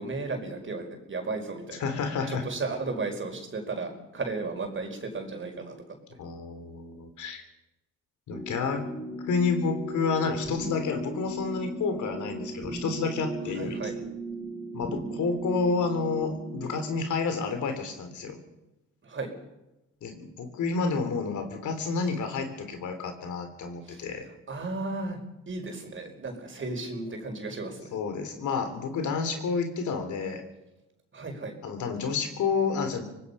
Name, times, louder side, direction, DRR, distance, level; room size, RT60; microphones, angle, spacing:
voice 1, 0.0-1.9 2.3-5.8 13.6-13.9 19.0-19.3 23.8-24.0 24.5-25.2 25.5-27.9 31.1-31.5, right 3 dB, 40° right, 3 dB, 5.1 m, -34 dB
voice 2, 1.8-2.4 6.2-7.4 8.3-8.8 9.3-14.0 14.7-18.4 20.0-24.2 27.9-30.4 31.6-33.1, left 5 dB, 75° left, 6 dB, 3.6 m, -30 dB
sound 1, 8.3-17.0, right 1 dB, 15° right, 5.6 m, -37 dB
24.5 x 19.0 x 5.7 m, 0.96 s
cardioid pair, 90°, 30 cm